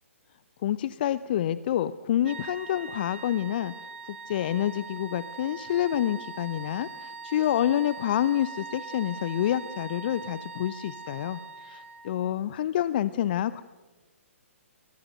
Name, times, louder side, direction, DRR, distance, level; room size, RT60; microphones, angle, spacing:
voice 1, 0.6-13.6, left 11 dB, 40° left, 16 dB, 0.7 m, -28 dB
sound 1, 2.2-12.2, right 4 dB, 55° right, 5.6 m, -42 dB
29.5 x 23.0 x 6.6 m, 1.3 s
figure-of-eight pair, 125°, 7 cm